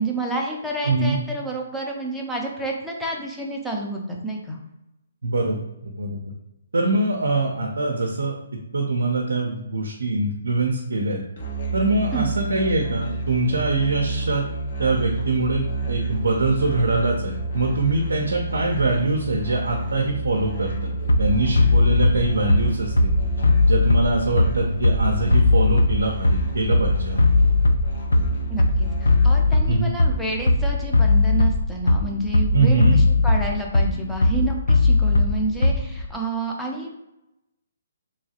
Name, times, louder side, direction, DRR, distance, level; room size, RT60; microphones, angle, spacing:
voice 1, 0.0-4.6 12.1-12.3 28.5-28.6 29.0-36.9, right 2 dB, ahead, -3 dB, 0.5 m, -29 dB
voice 2, 0.8-1.2 5.2-6.2 6.7-8.4 8.7-11.2 11.7-14.5 14.8-20.9 21.2-23.1 23.7-27.4 29.7-30.0 32.5-33.0, right 2 dB, 80° right, 1 dB, 0.5 m, -23 dB
Musical instrument, 11.4-29.7, right 2 dB, 60° left, 0.9 m, -29 dB
Bass drum, 21.1-36.1, left 3 dB, 85° left, 0.3 m, -19 dB
2.9 x 2.3 x 2.8 m, 0.91 s
hypercardioid pair, 145°, 0 cm